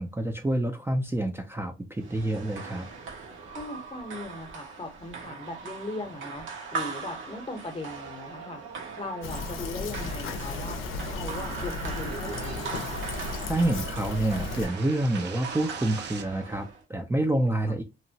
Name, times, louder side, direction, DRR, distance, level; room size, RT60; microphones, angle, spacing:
voice 1, 0.0-2.9 13.5-17.8, right 1 dB, 10° right, 0.4 m, -28 dB
sound 1, 2.0-16.8, right 5 dB, 80° right, 0.9 m, -39 dB
voice 2, 3.5-8.6 9.0-12.7, left 2 dB, 30° left, 0.8 m, -39 dB
Fill (with liquid), 9.2-14.7, left 4 dB, 85° left, 0.6 m, -35 dB
sink tweak, 12.0-16.3, right 7 dB, 60° right, 0.5 m, -46 dB
2.8 x 2.1 x 2.7 m
cardioid pair, 90°, 20 cm